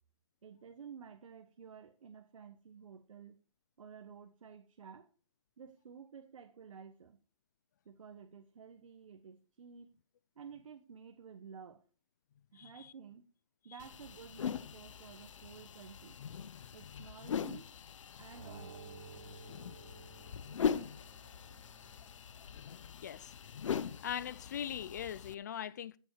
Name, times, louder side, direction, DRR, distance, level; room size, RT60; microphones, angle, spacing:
voice 1, 0.4-3.4 3.8-5.1 5.6-7.2 7.8-9.9 10.3-11.8 12.5-13.3 13.6-16.2 16.7-17.7 18.2-18.9, right 6 dB, 80° right, 1.2 m, -52 dB
voice 2, 12.5-12.9 16.8-17.0 23.0-23.3 24.0-26.0, left 9 dB, 35° left, 0.4 m, -41 dB
sound 1, 13.8-25.3, left 7 dB, 70° left, 0.8 m, -41 dB
sound 2, 18.3-21.0, right 4 dB, 30° right, 6.4 m, -53 dB
Bowed string instrument, 18.7-22.8, right 9 dB, 50° right, 1.9 m, -67 dB
15.5 x 7.0 x 4.8 m
hypercardioid pair, 170°, 17 cm